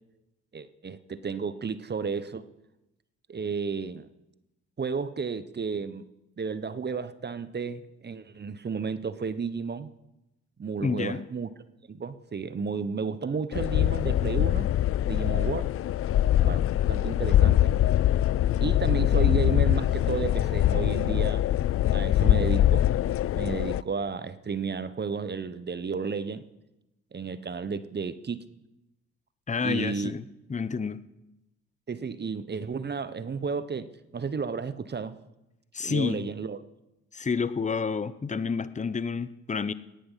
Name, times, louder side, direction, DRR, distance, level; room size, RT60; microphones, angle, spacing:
voice 1, 0.5-2.4 3.3-4.1 4.8-6.0 6.4-9.9 10.6-11.5 11.9-14.7 15.1-15.7 16.4-16.6 16.9-17.8 18.6-21.4 21.9-22.9 23.3-26.5 27.1-28.5 29.6-30.1 31.9-35.1 35.8-36.6, right 5 dB, 30° right, 14 dB, 1.0 m, -32 dB
voice 2, 10.8-11.2 29.5-30.2 30.5-31.0 35.7-36.3 37.1-39.7, left 5 dB, 20° left, 15 dB, 0.9 m, -29 dB
sound 1, 13.5-23.8, left 12 dB, 45° left, 0.4 m, -23 dB
17.5 x 10.5 x 5.7 m, 0.96 s
hypercardioid pair, 50°, 33 cm